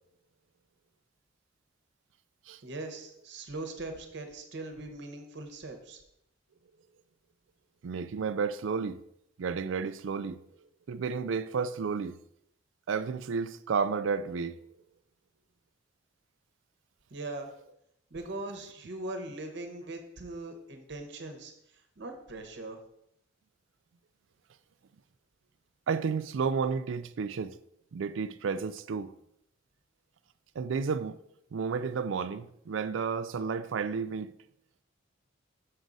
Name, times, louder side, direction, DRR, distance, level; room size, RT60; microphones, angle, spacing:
voice 1, 2.6-6.0 17.1-17.5 18.1-21.5 22.0-22.8, right 2 dB, 65° right, 1.1 m, -40 dB
voice 2, 7.8-9.0 9.4-10.4 10.9-12.2 12.9-14.6 25.9-27.5 27.9-29.1 30.6-31.2 31.5-34.3, right 5 dB, 85° right, 0.4 m, -31 dB
6.4 x 6.2 x 4.0 m
head